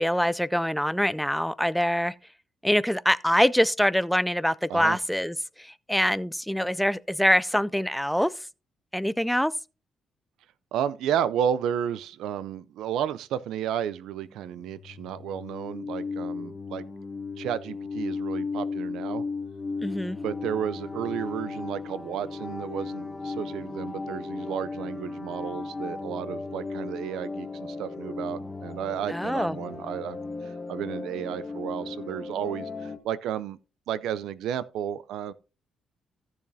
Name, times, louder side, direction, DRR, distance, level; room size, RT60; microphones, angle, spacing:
voice 1, 0.0-2.1 2.6-8.3 8.9-9.5 19.8-20.2 29.1-29.6, equal, ahead, 0.3 m, -24 dB
voice 2, 10.7-16.8 17.4-19.2 20.2-30.2 30.4-33.6 33.9-35.3, right 9 dB, 85° right, 0.5 m, -32 dB
sound 1, 14.2-33.0, left 4 dB, 20° left, 1.1 m, -35 dB
Brass instrument, 21.4-29.2, right 3 dB, 65° right, 2.3 m, -61 dB
14.5 x 7.1 x 2.7 m
cardioid pair, 90°, 0 cm